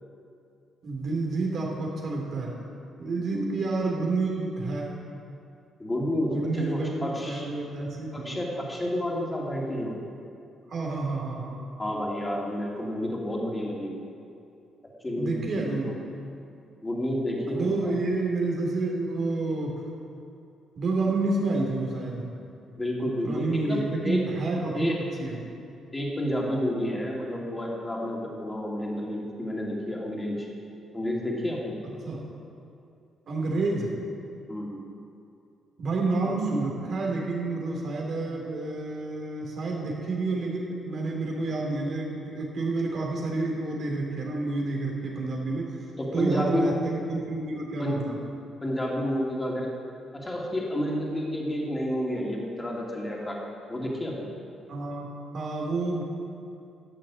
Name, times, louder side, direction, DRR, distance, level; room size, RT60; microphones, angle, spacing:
voice 1, 0.8-2.6 3.0-4.9 6.3-8.4 10.7-11.6 15.2-15.9 17.5-19.8 20.8-22.3 23.2-25.4 31.8-32.2 33.3-34.0 35.8-45.8 46.1-48.2 54.7-56.0, right 3 dB, 55° right, -1 dB, 3.4 m, -29 dB
voice 2, 3.3-3.6 5.8-7.5 8.1-9.9 11.8-14.0 15.0-16.0 16.8-17.9 22.7-24.3 24.7-25.0 25.9-30.5 30.9-31.8 34.5-34.8 46.0-46.8 47.8-48.0 48.6-49.7 50.1-53.4 53.7-54.3, left 1 dB, 20° left, -2 dB, 3.0 m, -30 dB
12.5 x 7.5 x 8.6 m, 2.6 s
cardioid pair, 90°, 0 cm